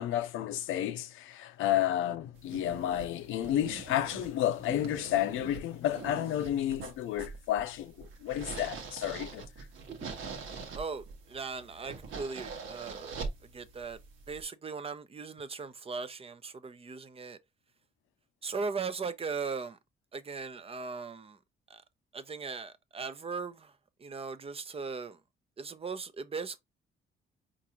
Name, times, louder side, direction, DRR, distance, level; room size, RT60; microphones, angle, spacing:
voice 1, 0.0-9.4, left 12 dB, 85° left, 0.5 m, -31 dB
sound 1, 2.3-14.4, right 5 dB, 80° right, 1.1 m, -43 dB
voice 2, 10.7-13.2 13.5-14.0 14.3-17.4 18.4-19.8 20.1-21.4 21.7-21.8 22.1-23.7 24.0-25.2 25.6-26.6, right 4 dB, 30° right, 0.5 m, -38 dB
4.5 x 2.6 x 2.9 m
cardioid pair, 90°, 20 cm